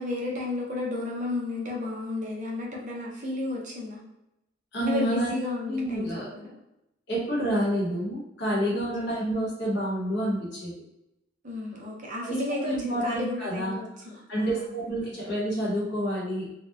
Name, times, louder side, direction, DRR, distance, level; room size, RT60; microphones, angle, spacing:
voice 1, 0.0-4.0 4.8-6.5 8.7-9.2 11.4-14.7, left 2 dB, 40° right, -1 dB, 0.5 m, -33 dB
voice 2, 4.7-5.3 5.6-6.3 7.1-10.7 12.2-16.5, right 1 dB, 65° left, -5 dB, 1.0 m, -29 dB
2.8 x 2.1 x 2.3 m, 0.86 s
head